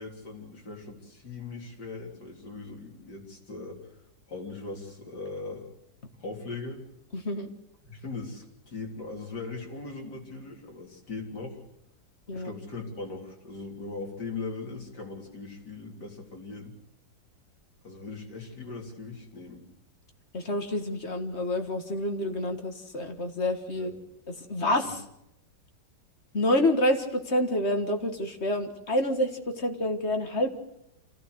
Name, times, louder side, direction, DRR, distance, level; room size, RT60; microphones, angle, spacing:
voice 1, 0.0-3.8 4.3-5.7 6.2-6.8 7.9-11.6 12.3-16.8 17.8-19.6 23.7-23.9, left 3 dB, 60° left, 0 dB, 4.1 m, -39 dB
voice 2, 7.1-7.5 12.3-12.5 20.3-23.9 24.3-25.0 26.3-30.5, left 1 dB, 35° left, 5 dB, 1.8 m, -28 dB
26.5 x 15.0 x 8.0 m, 0.83 s
omnidirectional pair, 2.0 m